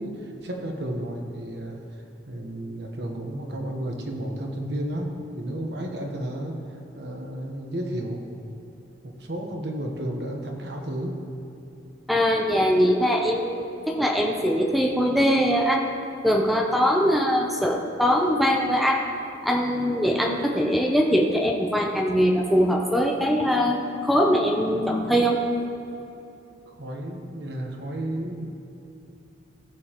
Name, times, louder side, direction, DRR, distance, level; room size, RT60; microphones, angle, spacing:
voice 1, 0.0-1.8 2.3-8.3 9.0-11.2 17.0-17.1 26.7-28.4, right 1 dB, 65° right, 1 dB, 1.1 m, -32 dB
voice 2, 12.1-15.8 16.2-19.0 19.4-25.4, equal, ahead, 0 dB, 0.6 m, -22 dB
15.5 x 6.9 x 3.0 m, 2.8 s
head